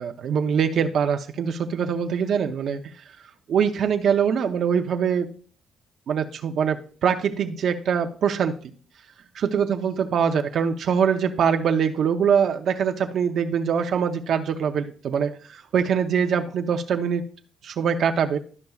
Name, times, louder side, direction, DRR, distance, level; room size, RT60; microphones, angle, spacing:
voice 1, 0.0-2.8 3.5-5.3 6.1-6.8 7.0-8.5 9.3-17.2 17.6-18.4, right 7 dB, 65° right, 6 dB, 0.6 m, -23 dB
12.0 x 5.4 x 2.3 m, 0.42 s
cardioid pair, 90°, 0 cm